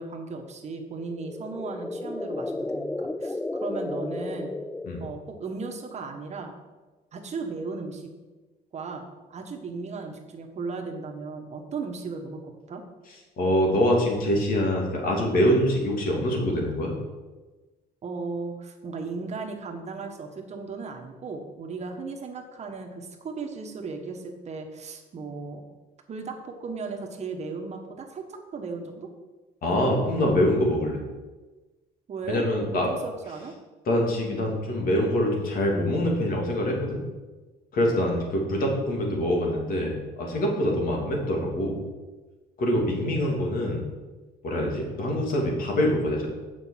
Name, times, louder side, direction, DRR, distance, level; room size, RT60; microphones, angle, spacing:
voice 1, 0.0-4.5 5.0-6.5 7.1-8.1 8.7-12.8 18.0-25.6 26.1-29.1 32.1-33.5, right 4 dB, 40° right, 3 dB, 1.4 m, -36 dB
sound 1, 1.0-5.4, left 2 dB, 5° left, 0.3 m, -33 dB
voice 2, 13.4-17.0 29.6-31.0 32.3-32.9 33.9-37.0 37.7-41.8 42.6-43.9 44.4-46.3, equal, 55° left, -1 dB, 3.0 m, -24 dB
7.4 x 6.0 x 7.5 m, 1.2 s
cardioid pair, 110°, 17 cm